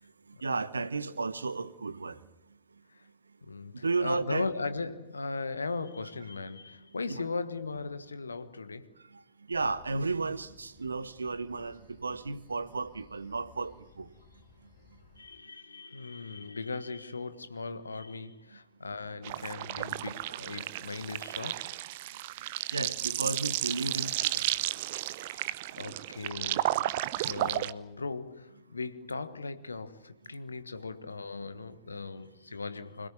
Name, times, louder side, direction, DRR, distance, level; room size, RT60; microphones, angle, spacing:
voice 1, 0.4-2.2 3.8-4.4 7.1-7.2 9.5-14.1 22.7-24.4, right 3 dB, 75° right, 1.2 m, -33 dB
voice 2, 3.4-9.0 15.2-21.7 24.9-33.1, left 4 dB, 75° left, 1.4 m, -38 dB
sound 1, 9.5-15.3, left 6 dB, 45° left, 6.1 m, -59 dB
sound 2, 19.2-27.7, right 15 dB, 50° right, 0.8 m, -33 dB
25.5 x 17.5 x 9.7 m
figure-of-eight pair, 90°, 0 cm